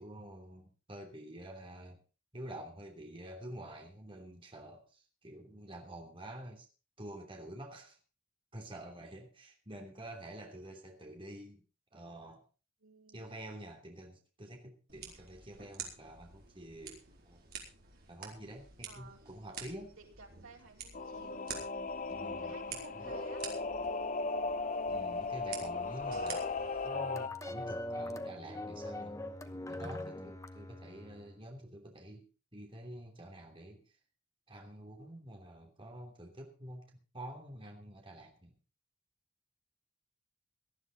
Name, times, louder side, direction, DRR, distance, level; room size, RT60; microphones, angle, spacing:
voice 1, 0.0-2.0 2.3-6.7 7.0-8.0 8.5-11.6 11.9-12.5 13.1-17.4 18.1-20.0 22.1-23.1 24.9-26.5 26.8-29.1 29.4-34.0 34.5-38.5, right 1 dB, 25° right, 2 dB, 3.0 m, -48 dB
voice 2, 12.8-13.3 18.9-19.2 20.0-21.5 21.7-22.0 22.4-23.4, right 3 dB, 90° right, 1 dB, 4.6 m, -55 dB
sound 1, 14.9-26.9, right 6 dB, 50° right, 4.3 m, -49 dB
Singing / Musical instrument, 20.9-27.3, left 3 dB, 40° left, 1.0 m, -37 dB
sound 2, 26.9-31.3, left 1 dB, 15° left, 1.0 m, -42 dB
18.5 x 12.5 x 4.0 m, 0.33 s
head